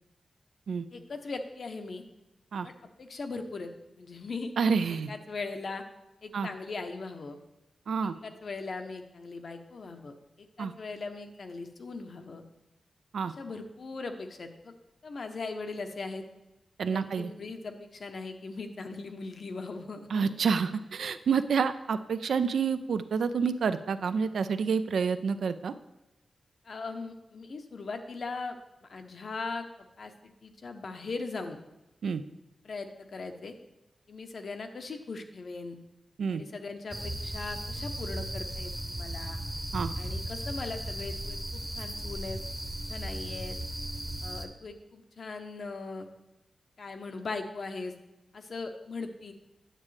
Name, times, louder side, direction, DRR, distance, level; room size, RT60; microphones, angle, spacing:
voice 1, 0.9-2.0 2.6-2.7 3.0-3.7 4.0-4.5 4.9-5.8 6.2-7.4 8.2-12.4 13.4-14.7 15.0-16.2 16.9-20.5 26.7-28.6 28.9-29.6 30.0-31.6 32.6-33.5 34.1-35.8 36.3-39.4 40.0-42.4 42.9-43.6 44.2-46.1 46.8-47.9 48.3-49.3, left 3 dB, 55° left, 7 dB, 0.7 m, -39 dB
voice 2, 4.6-5.1 6.3-6.5 7.9-8.1 10.6-10.7 13.1-13.3 16.8-17.3 20.1-25.7 32.0-32.2 36.2-36.4 39.7-39.9, right 6 dB, 85° right, 11 dB, 0.4 m, -28 dB
sound 1, 36.9-44.5, right 1 dB, ahead, 0.8 m, -36 dB
9.0 x 7.3 x 3.2 m, 0.97 s
wide cardioid pair, 125°, 0 cm